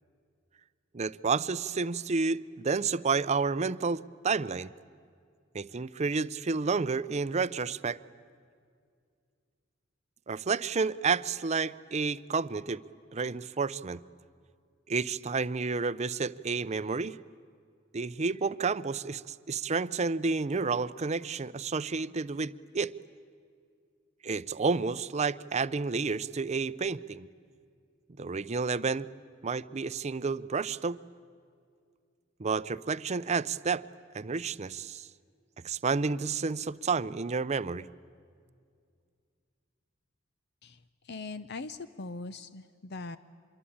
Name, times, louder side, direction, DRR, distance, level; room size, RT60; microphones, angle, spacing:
voice 1, 0.9-4.7 5.5-8.0 10.3-12.8 13.1-14.0 14.9-17.2 17.9-22.9 24.2-27.3 28.2-29.1 29.4-31.0 32.4-33.8 34.1-35.1 35.6-37.9, right 4 dB, 35° right, 17 dB, 0.6 m, -30 dB
voice 2, 41.0-43.2, left 3 dB, 60° left, 13 dB, 0.7 m, -41 dB
26.0 x 22.5 x 8.7 m, 2.2 s
head